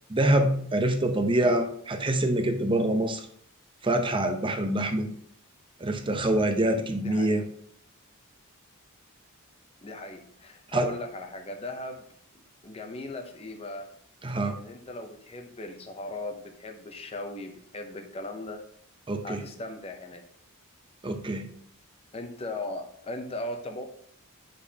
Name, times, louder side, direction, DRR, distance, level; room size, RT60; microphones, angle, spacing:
voice 1, 0.1-3.2 3.8-5.1 5.8-7.4 10.7-10.9 14.2-14.6 19.1-19.4 21.0-21.5, right 1 dB, 20° right, 6 dB, 0.7 m, -25 dB
voice 2, 6.7-7.4 9.8-12.1 12.6-13.9 14.5-18.6 19.2-20.2 22.1-23.8, left 2 dB, 25° left, 4 dB, 0.7 m, -38 dB
8.7 x 5.1 x 2.8 m, 0.66 s
head